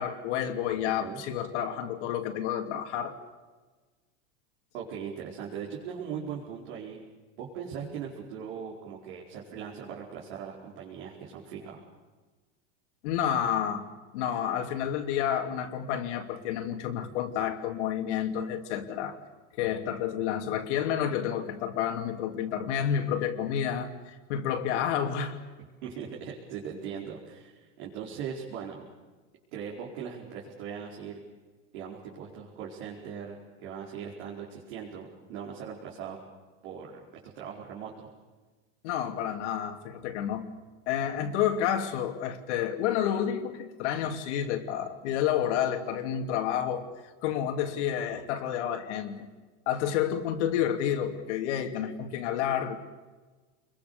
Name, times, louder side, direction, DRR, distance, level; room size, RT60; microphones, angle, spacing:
voice 1, 0.0-3.2 13.0-13.9 14.1-19.2 19.6-25.4 38.8-40.5 40.9-46.9 47.2-49.3 49.7-52.8, left 9 dB, 70° left, 5 dB, 2.9 m, -30 dB
voice 2, 4.7-7.0 7.4-11.9 25.8-28.9 29.5-31.2 31.7-36.2 36.6-38.1, right 7 dB, 65° right, -4 dB, 4.9 m, -40 dB
28.5 x 22.5 x 7.0 m, 1.3 s
supercardioid pair, 145°, 36 cm